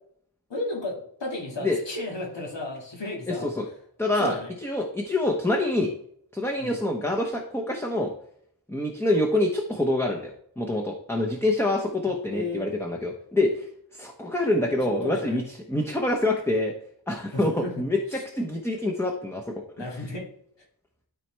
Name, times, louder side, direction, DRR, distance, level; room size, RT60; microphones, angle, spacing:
voice 1, 0.5-3.5 4.1-4.5 6.6-6.8 12.3-12.7 14.8-15.4 17.3-17.8 18.1-18.2 19.8-20.3, left 2 dB, 70° left, -1 dB, 2.1 m, -33 dB
voice 2, 3.3-3.6 4.0-4.3 4.6-5.9 6.3-8.1 8.7-13.7 13.9-15.4 15.7-16.7 17.1-19.8, left 1 dB, 5° left, 0 dB, 0.9 m, -26 dB
12.5 x 4.2 x 3.3 m, 0.69 s
wide cardioid pair, 80°, 44 cm